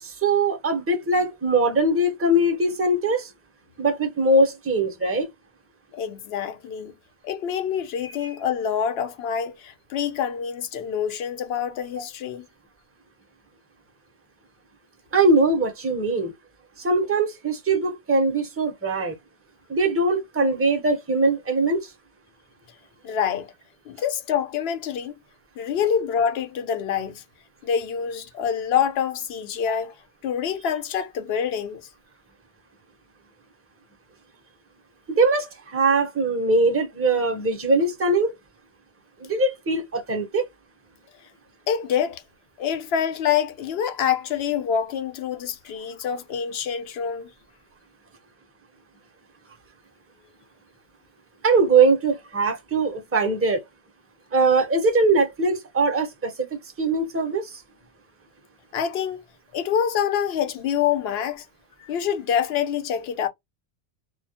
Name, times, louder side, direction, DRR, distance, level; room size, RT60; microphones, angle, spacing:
voice 1, 0.0-3.3 3.8-5.3 15.1-16.3 16.8-19.2 19.7-21.9 35.1-38.3 39.2-40.5 51.4-53.6 54.3-56.5 56.8-57.6, right 2 dB, 15° right, 0.5 m, -21 dB
voice 2, 5.9-6.9 7.2-12.4 23.0-23.5 23.9-25.1 25.6-27.2 27.6-29.9 30.2-31.8 41.7-42.2 42.6-47.3 58.7-59.2 59.5-61.5 61.8-63.3, left 8 dB, 75° left, 0.8 m, -26 dB
2.2 x 2.0 x 2.7 m
omnidirectional pair, 1.1 m